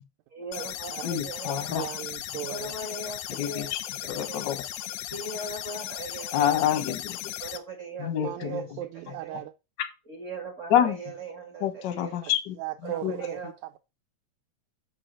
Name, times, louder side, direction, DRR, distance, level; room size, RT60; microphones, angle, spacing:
voice 1, 0.3-1.9 2.5-3.7 4.1-4.5 5.1-6.7 7.4-8.1 8.4-8.6 9.0-9.4 10.1-12.2 12.8-13.5, right 3 dB, 35° right, 1.5 m, -39 dB
sound 1, 0.5-7.6, left 12 dB, 90° left, 2.0 m, -37 dB
voice 2, 1.0-1.9 3.4-4.6 6.3-7.3 8.0-8.6 10.7-11.0 11.6-12.6 13.0-13.2, left 10 dB, 65° left, 1.1 m, -27 dB
voice 3, 1.7-2.8 8.2-9.5 12.1-12.3 12.6-13.8, right 12 dB, 80° right, 1.9 m, -37 dB
6.3 x 4.9 x 6.3 m
omnidirectional pair, 3.3 m